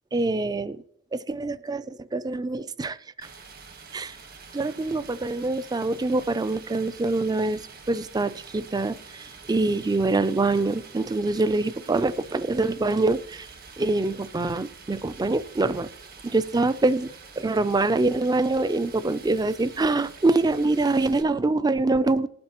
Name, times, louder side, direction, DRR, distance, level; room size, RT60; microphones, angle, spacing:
voice 1, 0.1-0.8 1.1-3.0 3.9-4.2 4.5-7.6 7.9-13.5 13.8-15.9 16.2-17.1 17.4-22.3, right 2 dB, 20° right, 16 dB, 0.4 m, -25 dB
Stream, 3.2-21.2, right 5 dB, 50° right, 1.4 m, -46 dB
20.0 x 8.7 x 3.0 m, 0.74 s
head